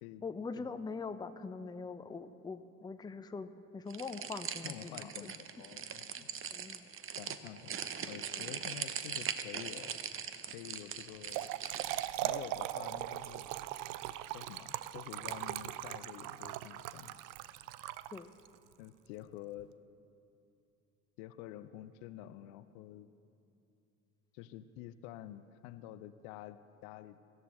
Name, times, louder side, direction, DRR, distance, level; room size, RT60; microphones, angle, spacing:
voice 1, 0.2-5.3 6.2-6.9 8.4-8.5 18.1-18.3, left 4 dB, 10° left, 10 dB, 0.6 m, -43 dB
sound 1, 3.9-12.1, right 8 dB, 30° right, 0.9 m, -41 dB
voice 2, 4.6-6.3 7.1-7.7 8.1-10.0 10.5-11.5 12.2-13.5 14.3-17.1 18.8-19.7 21.2-23.1 24.3-27.2, left 12 dB, 55° left, 13 dB, 0.7 m, -48 dB
Trickle dribble / Fill (with liquid), 11.1-18.5, right 14 dB, 45° right, 0.6 m, -39 dB
24.0 x 14.0 x 3.2 m, 2.6 s
figure-of-eight pair, 60°, 43 cm